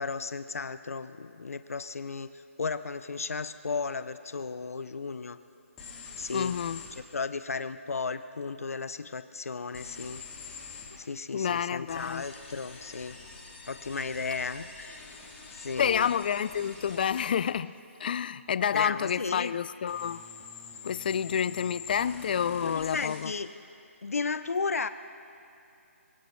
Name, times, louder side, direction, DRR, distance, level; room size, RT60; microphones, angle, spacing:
voice 1, 0.0-5.4 6.2-6.6 7.0-10.2 11.0-13.2 13.7-15.1 15.5-16.1 18.7-19.5 22.6-23.5 24.0-24.9, left 4 dB, 90° left, 12 dB, 0.6 m, -34 dB
sound 1, 5.8-6.9 9.7-10.9 11.9-17.2 19.9-23.2, left 5 dB, 10° left, 2.8 m, -46 dB
voice 2, 6.3-6.8 10.9-11.0 11.3-12.2 15.8-17.7 18.0-20.2 20.8-23.3, left 8 dB, 40° left, 16 dB, 0.4 m, -29 dB
23.0 x 18.0 x 3.2 m, 2.7 s
hypercardioid pair, 160°, 8 cm